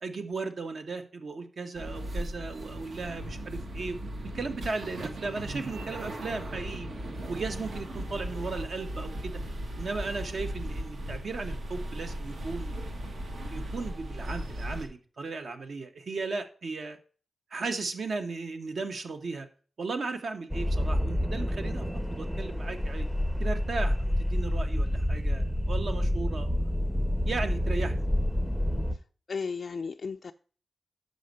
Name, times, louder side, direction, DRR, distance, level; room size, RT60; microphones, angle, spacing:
voice 1, 0.0-4.0 4.3-6.9 7.3-9.4 9.8-12.9 13.5-17.0 17.5-19.5 19.8-21.8 22.2-23.1 23.4-26.6 27.3-28.1, right 3 dB, 60° right, 0.9 m, -36 dB
sound 1, 1.7-14.9, right 1 dB, 80° right, 1.5 m, -37 dB
sound 2, 20.5-28.9, left 1 dB, 5° right, 0.6 m, -28 dB
voice 2, 29.3-30.3, left 5 dB, 50° left, 0.3 m, -34 dB
6.4 x 5.2 x 6.6 m
wide cardioid pair, 135°, 0 cm